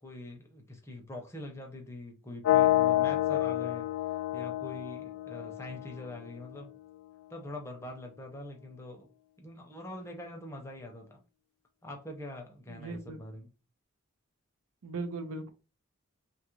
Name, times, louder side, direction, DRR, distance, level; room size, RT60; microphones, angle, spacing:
voice 1, 0.0-6.8 7.3-9.1 9.4-11.2 11.8-13.5, left 1 dB, 10° left, 0.5 m, -44 dB
sound 1, 2.4-6.4, left 14 dB, 85° left, 0.3 m, -28 dB
voice 2, 12.7-13.2 14.8-15.5, right 3 dB, 90° right, 0.5 m, -38 dB
2.8 x 2.4 x 3.0 m
head